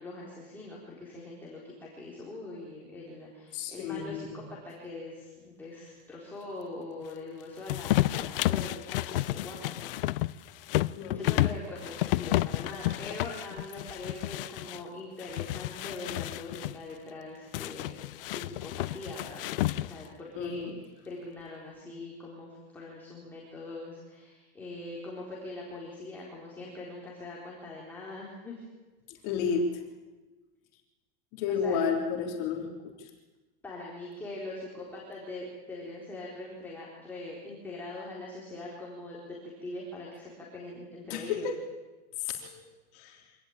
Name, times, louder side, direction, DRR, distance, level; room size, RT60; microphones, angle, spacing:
voice 1, 0.0-4.3 4.6-9.9 11.1-17.9 18.2-20.7 21.1-28.6 31.5-31.8 33.6-41.5, left 2 dB, 5° left, -5 dB, 4.1 m, -42 dB
voice 2, 3.5-4.4 10.9-11.5 20.3-20.8 29.1-29.8 31.3-33.1 41.0-41.6 42.2-42.6 42.9-43.4, left 6 dB, 40° left, 2 dB, 3.4 m, -32 dB
sound 1, 7.7-14.8 15.2-16.8 17.5-20.1, left 16 dB, 65° left, 0.8 m, -31 dB
25.5 x 19.0 x 8.9 m, 1.2 s
supercardioid pair, 175°, 30 cm